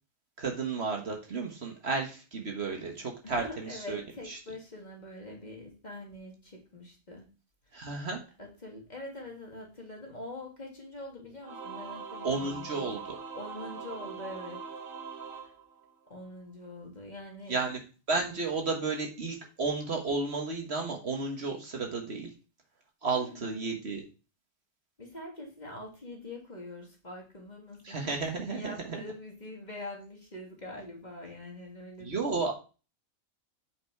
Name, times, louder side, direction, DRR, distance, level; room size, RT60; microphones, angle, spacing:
voice 1, 0.4-4.0 4.3-4.4 7.7-8.2 12.2-13.0 17.5-17.8 18.1-22.3 23.0-24.0 27.8-29.0 32.0-32.5, right 4 dB, 50° right, 2 dB, 1.6 m, -32 dB
voice 2, 3.2-7.3 8.4-13.0 13.3-14.6 15.3-15.5 16.1-17.6 23.0-23.8 25.0-32.2, left 1 dB, 30° left, 0 dB, 2.1 m, -44 dB
Singing / Musical instrument, 11.4-16.3, right 5 dB, 75° right, 1.4 m, -42 dB
7.7 x 5.2 x 4.6 m, 0.33 s
omnidirectional pair, 1.4 m